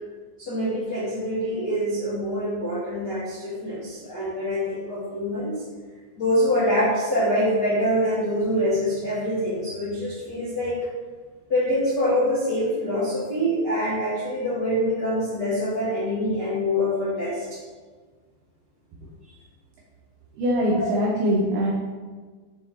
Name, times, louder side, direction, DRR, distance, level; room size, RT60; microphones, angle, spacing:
voice 1, 0.4-5.6 6.2-10.8 11.5-17.6 20.7-20.9, equal, 60° left, -11 dB, 1.0 m, -25 dB
voice 2, 20.4-21.7, equal, 80° right, -4 dB, 2.3 m, -22 dB
7.2 x 4.7 x 4.3 m, 1.4 s
omnidirectional pair, 5.6 m